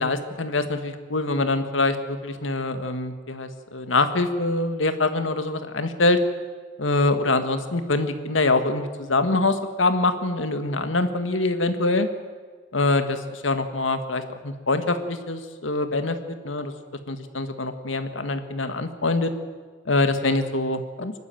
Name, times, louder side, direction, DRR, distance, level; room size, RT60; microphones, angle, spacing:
voice 1, 0.0-6.2 6.8-12.1 12.7-16.2 16.4-16.7 17.1-19.3 19.8-21.1, left 2 dB, 85° left, 9 dB, 1.7 m, -24 dB
24.0 x 12.5 x 9.1 m, 1.5 s
head